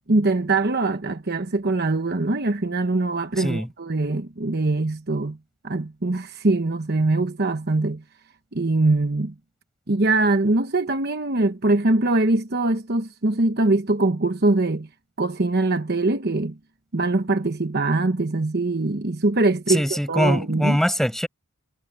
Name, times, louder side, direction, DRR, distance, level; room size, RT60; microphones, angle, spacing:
voice 1, 0.1-5.4 5.6-8.0 8.5-9.3 9.9-14.9 15.2-16.6 16.9-20.8, right 2 dB, 45° right, 1.0 m, -22 dB
voice 2, 3.4-3.7 19.7-21.3, equal, ahead, 5.6 m, -22 dB
head